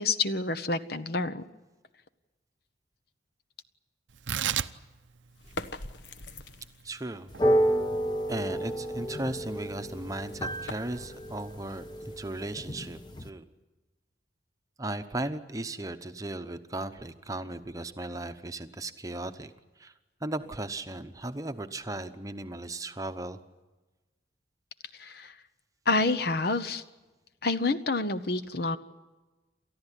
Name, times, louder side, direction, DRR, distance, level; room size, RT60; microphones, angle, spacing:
voice 1, 0.0-1.4 25.0-25.3 25.9-26.8 27.4-28.8, left 3 dB, 55° left, 12 dB, 1.0 m, -28 dB
Tearing, 4.1-10.8, right 9 dB, 80° right, 0.7 m, -38 dB
sound 1, 5.3-7.0 9.7-12.6, left 2 dB, 70° left, 1.1 m, -44 dB
voice 2, 6.8-7.3 8.3-13.4 14.8-19.9 20.2-23.4, right 2 dB, 20° right, 8 dB, 0.9 m, -36 dB
sound 2, 7.3-13.3, right 1 dB, 25° left, 1.0 m, -30 dB
29.5 x 14.0 x 10.0 m, 1.2 s
head